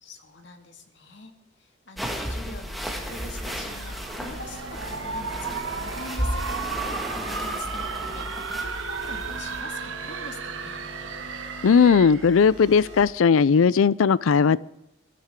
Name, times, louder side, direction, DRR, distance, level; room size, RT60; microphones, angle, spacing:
voice 1, 0.0-10.8, left 3 dB, 60° left, 2.0 m, -44 dB
sound 1, 2.0-9.6, equal, ahead, 1.6 m, -34 dB
sound 2, 3.0-13.0, equal, 25° right, 5.3 m, -43 dB
sound 3, 3.5-12.4, right 5 dB, 80° right, 1.3 m, -34 dB
voice 2, 11.6-14.6, left 6 dB, 90° left, 0.4 m, -18 dB
23.5 x 13.0 x 3.7 m
head